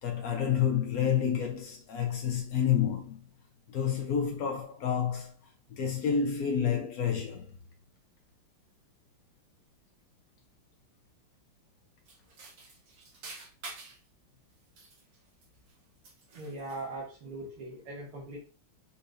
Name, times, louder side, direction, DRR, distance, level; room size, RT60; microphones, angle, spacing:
voice 1, 0.0-3.2 3.7-5.3 5.7-7.5, left 8 dB, 85° left, 0.7 m, -29 dB
sound 1, 12.1-14.1 14.6-15.7 16.0-16.9, right 3 dB, 60° right, 1.8 m, -48 dB
voice 2, 16.3-18.4, right 2 dB, 90° right, 2.0 m, -40 dB
5.2 x 4.0 x 2.5 m
omnidirectional pair, 2.3 m